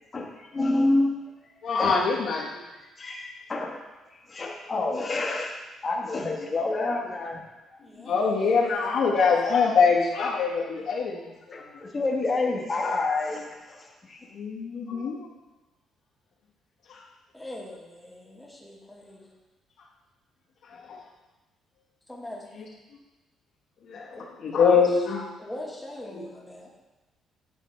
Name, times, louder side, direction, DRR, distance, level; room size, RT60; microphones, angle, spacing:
voice 1, 0.1-1.1 1.8-2.0 3.0-3.8 4.3-7.4 10.5-10.6 11.5-14.3, left 2 dB, 25° left, -1 dB, 1.2 m, -28 dB
voice 2, 1.6-2.5 6.4-6.5 8.0-11.8 14.3-15.3 16.9-17.0 20.6-21.0 22.6-22.7 23.8-25.2 26.1-26.2, left 5 dB, 65° left, -7 dB, 1.4 m, -24 dB
voice 3, 7.8-9.1 10.4-10.8 14.8-14.9 17.3-19.3 22.1-22.4 24.1-24.3 24.7-24.9 25.4-26.7, left 1 dB, 5° left, -3 dB, 1.4 m, -42 dB
9.9 x 4.9 x 3.2 m, 1.1 s
cardioid pair, 140°, 0 cm